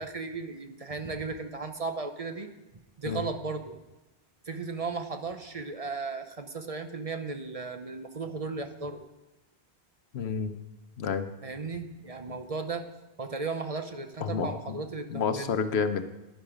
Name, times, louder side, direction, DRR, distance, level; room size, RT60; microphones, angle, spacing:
voice 1, 0.0-2.5 3.0-3.8 4.5-9.0 11.4-12.9 13.2-15.5, right 4 dB, 40° right, 7 dB, 0.8 m, -35 dB
voice 2, 10.1-10.5 11.0-11.3 14.2-14.8 15.1-16.0, left 6 dB, 90° left, 9 dB, 1.1 m, -29 dB
10.5 x 10.5 x 5.0 m, 1.0 s
omnidirectional pair, 1.0 m